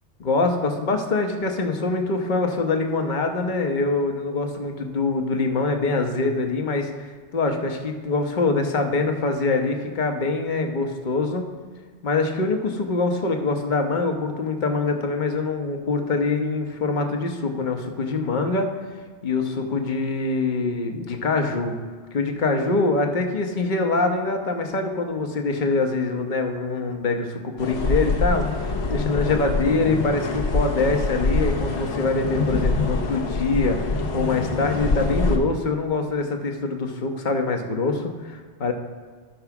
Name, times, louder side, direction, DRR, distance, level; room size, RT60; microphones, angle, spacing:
voice 1, 0.2-11.5 12.0-18.7 19.2-21.8 22.1-38.7, left 3 dB, 45° left, 4 dB, 1.0 m, -24 dB
sound 1, 27.6-35.4, left 3 dB, 65° left, 1.2 m, -25 dB
13.0 x 4.7 x 5.9 m, 1.5 s
omnidirectional pair, 1.2 m